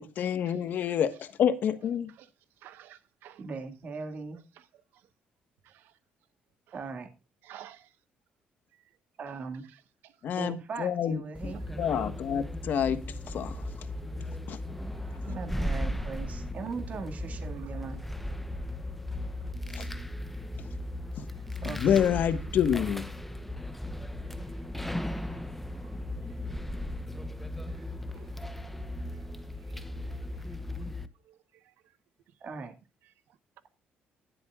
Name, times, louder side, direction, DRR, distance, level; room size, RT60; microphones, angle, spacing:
voice 1, 0.0-2.1 10.2-11.5 11.8-13.0 13.3-13.6 14.5-14.6 19.7-19.8 21.6-23.0, left 8 dB, 60° left, 1.4 m, -28 dB
voice 2, 2.6-3.5 5.7-5.8 7.4-7.9 15.0-15.2 17.6-17.7 25.3-25.4 28.1-28.3 29.7-29.8, right 12 dB, 85° right, 1.1 m, -51 dB
voice 3, 3.4-4.4 6.7-7.1 9.2-9.7 10.4-12.2 15.2-18.0 21.6-22.0 32.4-32.7, right 4 dB, 45° right, 2.1 m, -39 dB
sound 1, 11.3-31.1, left 1 dB, 5° left, 0.9 m, -36 dB
20.0 x 7.9 x 2.4 m
cardioid pair, 120°, 3 cm